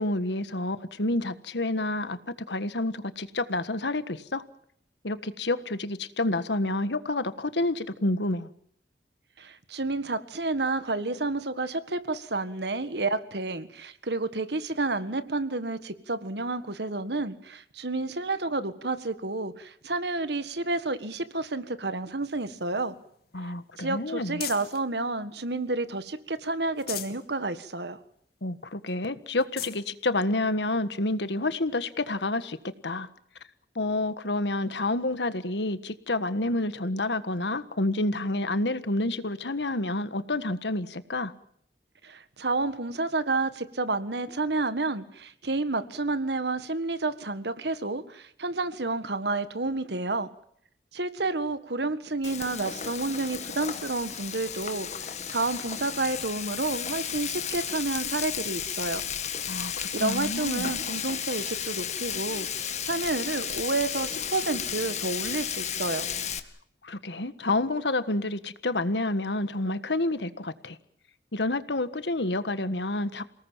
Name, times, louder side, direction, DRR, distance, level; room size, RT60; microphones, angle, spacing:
voice 1, 0.0-4.4 5.0-8.5 23.3-24.4 28.4-32.6 32.8-33.1 33.7-41.3 59.5-60.7 66.8-70.8 71.3-73.2, left 2 dB, 80° left, 13 dB, 1.5 m, -29 dB
voice 2, 9.4-23.0 23.4-28.0 42.0-50.3 50.9-59.0 59.6-59.7 59.9-62.5 62.8-66.1, right 2 dB, 70° right, 12 dB, 1.7 m, -30 dB
sound 1, 22.2-24.9 25.4-26.2 26.6-27.3 27.7-27.8 28.2-28.3 28.9-29.0 29.3-29.8 30.6-30.7 32.5-32.6, left 11 dB, 60° left, 2.7 m, -41 dB
Frying (food), 52.2-66.4, left 8 dB, 40° left, 1.7 m, -33 dB
28.5 x 19.0 x 7.5 m, 0.68 s
head